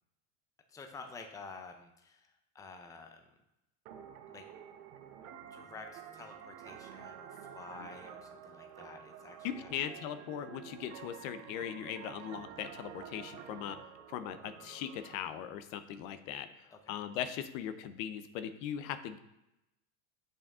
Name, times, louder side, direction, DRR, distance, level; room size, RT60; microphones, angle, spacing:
voice 1, 0.7-3.2 4.3-4.4 5.5-9.7 16.7-17.0, left 4 dB, 10° left, 4 dB, 0.6 m, -50 dB
Trap Melody, 3.9-15.2, right 9 dB, 80° right, 0.8 m, -50 dB
voice 2, 9.4-13.8 14.1-19.2, left 9 dB, 70° left, 11 dB, 0.7 m, -39 dB
7.1 x 5.3 x 3.6 m, 0.90 s
supercardioid pair, 130°, 42 cm